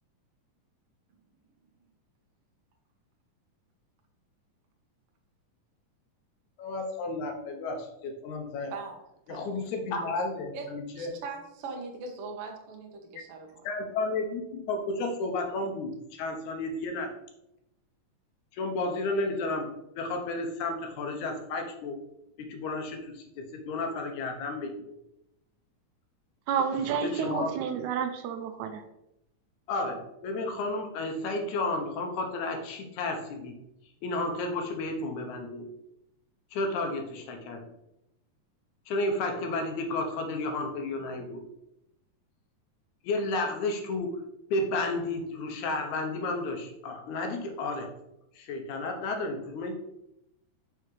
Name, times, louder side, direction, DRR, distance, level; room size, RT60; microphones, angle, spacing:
voice 1, 6.6-8.7 9.3-11.1 13.7-17.1 18.6-22.0 22.4-23.2 23.5-24.7 27.0-27.5 29.7-33.6 34.0-35.7 36.5-37.6 38.9-41.4 43.0-44.2 44.5-47.9 48.4-49.7, left 2 dB, 75° left, 4 dB, 2.1 m, -32 dB
voice 2, 10.9-13.6, right 4 dB, 65° right, 2 dB, 1.5 m, -40 dB
voice 3, 26.5-28.8, right 7 dB, 80° right, 7 dB, 1.8 m, -30 dB
5.7 x 5.7 x 3.1 m, 0.84 s
omnidirectional pair, 3.7 m